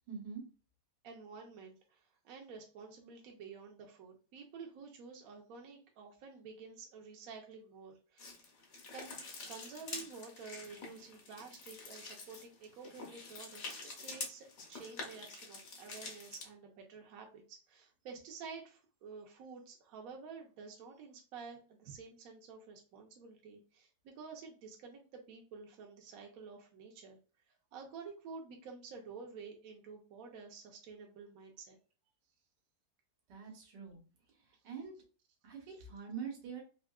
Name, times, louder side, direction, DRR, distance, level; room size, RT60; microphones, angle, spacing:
voice 1, 0.1-0.4 33.3-34.0 34.5-34.9 35.4-36.6, right 6 dB, 85° right, 1 dB, 1.7 m, -44 dB
voice 2, 1.0-8.3 8.9-9.2 9.5-27.2 27.7-31.8, right 5 dB, 65° right, 2 dB, 1.0 m, -50 dB
sound 1, 8.2-16.5, left 3 dB, 60° left, 1.2 m, -47 dB
3.6 x 2.7 x 2.2 m, 0.36 s
omnidirectional pair, 1.9 m